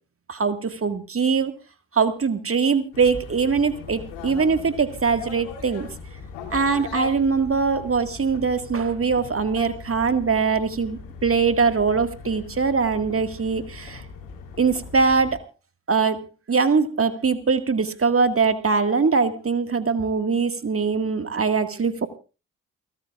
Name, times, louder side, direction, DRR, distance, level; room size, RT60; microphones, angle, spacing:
voice 1, 0.3-1.5 1.9-5.9 6.5-14.0 14.6-15.4 15.9-22.1, right 5 dB, 35° right, 8 dB, 2.0 m, -22 dB
sound 1, 2.9-15.4, left 5 dB, 80° left, 3.1 m, -39 dB
29.0 x 13.0 x 2.5 m, 0.33 s
hypercardioid pair, 40°, 40 cm